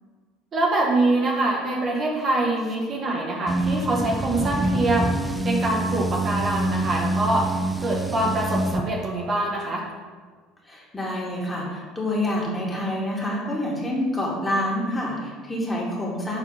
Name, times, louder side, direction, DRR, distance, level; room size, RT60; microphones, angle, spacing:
voice 1, 0.5-5.1 5.4-9.8, right 2 dB, 40° right, -1 dB, 1.4 m, -24 dB
sound 1, 3.5-8.8, right 1 dB, 10° right, 0.6 m, -26 dB
voice 2, 10.6-16.4, left 1 dB, 15° left, -4 dB, 2.4 m, -27 dB
6.6 x 4.4 x 5.7 m, 1.5 s
hypercardioid pair, 70°, 0 cm